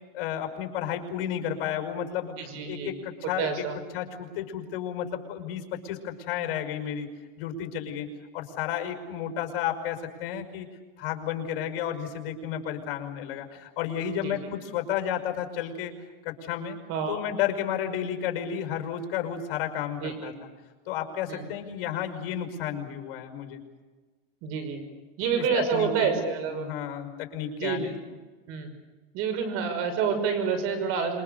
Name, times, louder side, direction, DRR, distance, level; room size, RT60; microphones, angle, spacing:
voice 1, 0.1-2.3 2.6-3.5 3.9-7.1 7.4-8.1 8.3-10.7 11.0-15.9 16.2-16.8 17.1-20.3 20.9-23.6 25.4-25.5 25.7-26.2 26.5-27.9, left 9 dB, 55° left, 5 dB, 5.6 m, -32 dB
voice 2, 2.4-2.9 3.4-3.8 14.2-14.4 16.9-17.2 20.0-20.3 21.3-21.5 24.4-24.8 25.2-26.7 27.6-27.9 28.5-28.7 29.1-31.2, right 6 dB, 50° right, 8 dB, 6.1 m, -28 dB
27.5 x 24.0 x 6.9 m, 1.3 s
supercardioid pair, 140°, 29 cm